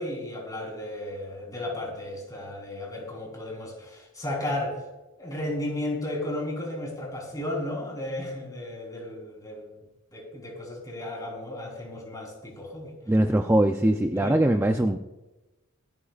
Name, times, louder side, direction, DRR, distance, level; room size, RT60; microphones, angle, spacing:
voice 1, 0.0-4.8 5.2-9.7 10.1-13.0 14.1-14.4, left 1 dB, 15° left, -1 dB, 3.7 m, -34 dB
voice 2, 13.1-15.0, right 1 dB, 10° right, 5 dB, 0.5 m, -22 dB
27.0 x 9.8 x 2.4 m, 1.1 s
head